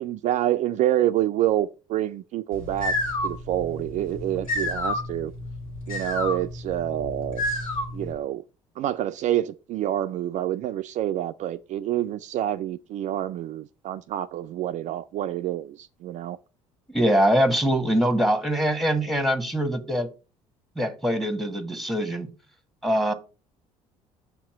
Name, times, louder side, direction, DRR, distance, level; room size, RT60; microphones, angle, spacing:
voice 1, 0.0-2.9 3.2-5.3 5.9-7.4 7.9-8.4 8.8-16.4, right 12 dB, 45° right, 0.4 m, -27 dB
sound 1, 2.5-8.1, left 1 dB, 90° left, 1.8 m, -30 dB
voice 2, 16.9-20.1 20.8-22.3 22.8-23.1, equal, ahead, 1.2 m, -23 dB
7.1 x 2.9 x 5.8 m
figure-of-eight pair, 55°, 17 cm